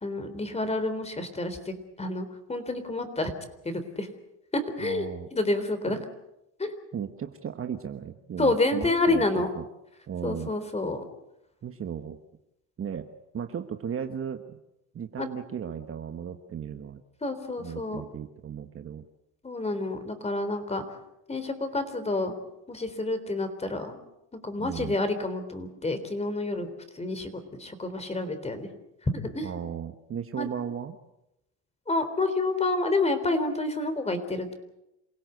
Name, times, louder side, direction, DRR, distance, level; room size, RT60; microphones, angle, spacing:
voice 1, 0.0-3.3 3.6-4.1 4.5-5.1 5.3-6.0 6.6-6.8 8.4-9.5 10.2-11.0 15.2-15.3 17.2-18.0 19.4-21.0 21.3-22.3 22.7-24.0 24.4-28.7 29.0-29.5 30.4-30.5 31.9-34.5, left 2 dB, 15° left, 10 dB, 3.8 m, -29 dB
voice 2, 4.8-5.3 5.8-6.0 6.9-9.7 10.1-10.5 11.6-12.2 12.8-13.1 13.3-14.6 14.9-17.0 17.6-19.0 24.6-24.9 29.4-31.0, right 8 dB, 30° right, 7 dB, 1.4 m, -36 dB
28.0 x 17.0 x 8.0 m, 0.88 s
supercardioid pair, 120°, 44 cm